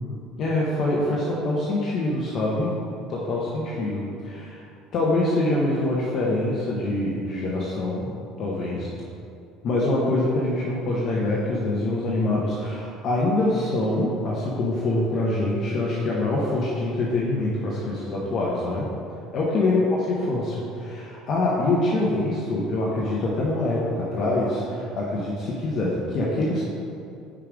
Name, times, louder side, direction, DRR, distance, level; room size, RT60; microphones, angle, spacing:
voice 1, 0.0-2.7 3.1-4.6 4.9-8.1 8.4-8.9 9.6-18.9 19.3-26.6, left 2 dB, 45° left, -5 dB, 1.0 m, -25 dB
5.5 x 4.9 x 5.1 m, 2.6 s
cardioid pair, 120°, 0 cm